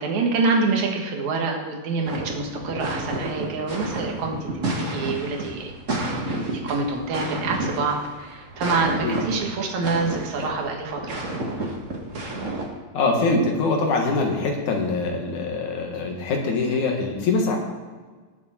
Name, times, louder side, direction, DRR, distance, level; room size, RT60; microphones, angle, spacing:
voice 1, 0.0-5.7 6.5-11.2, right 4 dB, 75° right, 1 dB, 2.9 m, -26 dB
sound 1, 2.0-12.7, right 1 dB, 30° right, 1.6 m, -30 dB
voice 2, 12.9-17.6, left 3 dB, 85° left, 1 dB, 3.2 m, -23 dB
18.0 x 7.2 x 4.4 m, 1.4 s
omnidirectional pair, 3.3 m